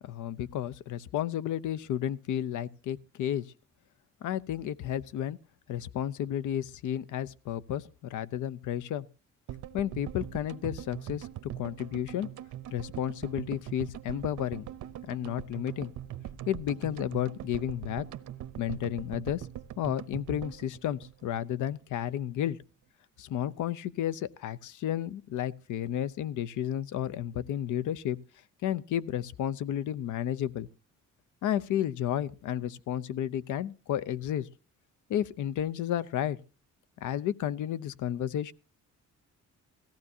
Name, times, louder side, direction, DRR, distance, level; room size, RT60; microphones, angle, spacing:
voice 1, 0.0-3.4 4.2-5.4 5.7-9.0 9.7-11.3 11.6-12.3 12.7-14.7 15.1-15.9 16.5-18.0 18.6-19.4 19.8-22.6 23.2-28.2 28.6-30.7 31.4-34.5 35.1-36.4 37.0-38.5, left 11 dB, 75° left, 0.7 m, -32 dB
sound 1, 9.5-21.7 22.0-22.1 22.2-22.3, right 12 dB, 75° right, 0.8 m, -42 dB
17.5 x 15.0 x 2.7 m
cardioid pair, 145°, 30 cm